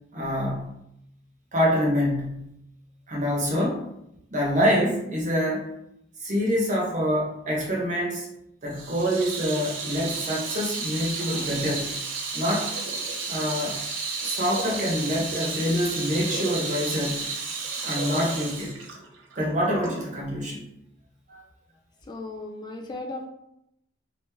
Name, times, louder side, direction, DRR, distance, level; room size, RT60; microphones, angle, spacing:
voice 1, 0.1-0.7 1.5-2.5 3.1-3.9 4.3-5.7 6.2-8.3 8.6-12.0 12.3-12.7 13.3-13.8 14.2-17.2 17.8-18.8 19.4-20.6 21.3-21.4, equal, 45° right, -3 dB, 1.0 m, -26 dB
Water tap faucet / Sink (filling or washing), 8.7-20.0, right 4 dB, 80° right, 0.6 m, -32 dB
voice 2, 22.1-23.3, left 2 dB, 25° left, 2 dB, 0.3 m, -36 dB
3.0 x 2.7 x 3.4 m, 0.80 s
head